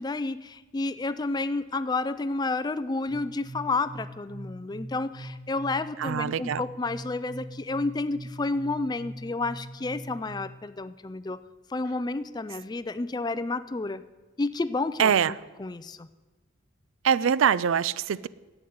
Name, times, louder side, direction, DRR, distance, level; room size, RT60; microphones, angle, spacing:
voice 1, 0.0-11.4 11.7-14.0 14.4-15.1 15.6-16.1, left 3 dB, 20° left, 0.3 m, -30 dB
sound 1, 3.1-10.6, right 1 dB, 5° right, 3.6 m, -42 dB
voice 2, 6.0-6.6 15.0-15.3 17.0-18.3, right 8 dB, 75° right, 0.4 m, -23 dB
10.5 x 8.0 x 9.3 m
head